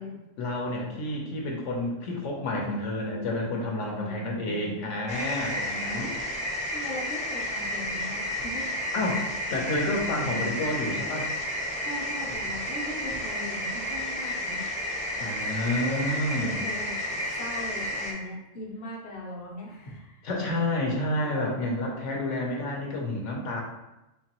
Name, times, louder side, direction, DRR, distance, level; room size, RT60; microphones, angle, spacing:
voice 1, 0.4-6.1 8.9-11.3 15.2-16.6 20.2-23.6, left 1 dB, 75° left, -1 dB, 1.0 m, -30 dB
voice 2, 3.9-4.7 5.9-6.3 6.7-8.6 10.2-10.3 11.9-14.6 15.8-20.3, left 1 dB, 50° left, -2 dB, 0.8 m, -39 dB
sound 1, 5.1-18.1, left 1 dB, 10° left, 0.4 m, -31 dB
3.8 x 2.9 x 2.9 m, 0.96 s
omnidirectional pair, 1.3 m